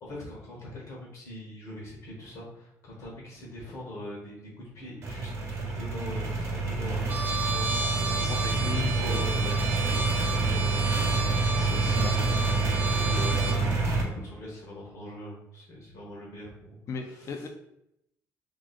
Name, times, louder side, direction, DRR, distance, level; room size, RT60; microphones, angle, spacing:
voice 1, 0.0-4.4 4.7-7.1 7.5-10.7 11.4-11.7 12.2-13.7 14.0-17.5, left 1 dB, 70° left, -4 dB, 1.3 m, -42 dB
sound 1, 5.0-14.0, right 3 dB, 50° right, 1.0 m, -27 dB
Trumpet, 7.1-13.6, right 3 dB, 30° right, 0.6 m, -32 dB
voice 2, 8.2-9.4 10.3-10.7 11.6-12.3 16.9-17.5, left 4 dB, 50° left, 4 dB, 0.6 m, -37 dB
3.1 x 2.4 x 4.1 m, 0.81 s
cardioid pair, 95°, 6 cm